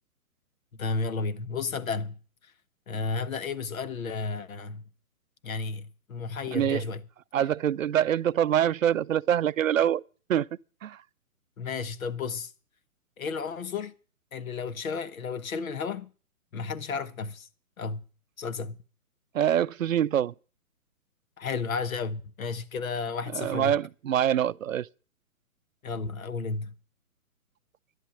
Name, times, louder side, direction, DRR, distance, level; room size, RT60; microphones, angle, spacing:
voice 1, 0.8-2.5 2.9-4.8 5.4-7.0 11.6-12.5 13.2-13.9 14.3-16.1 16.5-17.5 17.8-18.0 18.4-18.8 21.4-23.8 25.8-26.7, left 4 dB, 65° left, 1.3 m, -33 dB
voice 2, 6.5-6.8 7.3-10.0 10.3-10.5 10.8-11.0 19.3-20.3 23.3-24.9, right 10 dB, 60° right, 0.6 m, -25 dB
11.5 x 11.0 x 7.2 m
hypercardioid pair, 140°, 45 cm